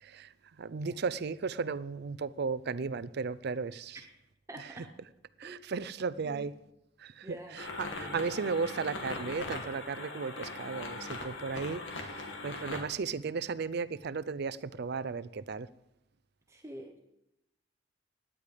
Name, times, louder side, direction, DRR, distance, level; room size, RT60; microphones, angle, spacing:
voice 1, 0.0-0.3 0.6-4.1 4.6-5.1 5.4-6.5 7.0-15.7, right 5 dB, 60° right, 0.5 m, -35 dB
voice 2, 4.5-4.9 5.4-5.6 6.2-6.5 7.2-7.6 7.9-8.3 16.5-17.0, right 1 dB, 15° right, 0.9 m, -46 dB
sound 1, 7.6-12.8, left 3 dB, 90° left, 2.3 m, -40 dB
17.0 x 10.0 x 5.1 m
head